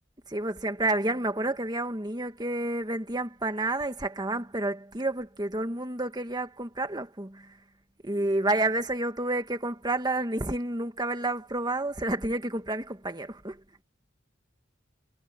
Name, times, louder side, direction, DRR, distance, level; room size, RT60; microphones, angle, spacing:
voice 1, 0.3-7.5 8.0-13.6, right 2 dB, 20° right, 1.8 m, -30 dB
head